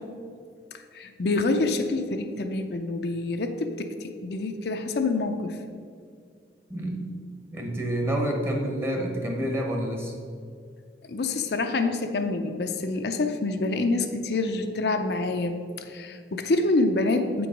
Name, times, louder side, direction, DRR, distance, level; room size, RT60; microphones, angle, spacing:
voice 1, 0.9-5.6 11.1-17.5, left 2 dB, 60° left, 6 dB, 0.5 m, -27 dB
voice 2, 6.7-7.1 7.5-10.1, right 1 dB, 15° right, 1 dB, 0.9 m, -28 dB
8.0 x 4.7 x 5.1 m, 2.2 s
head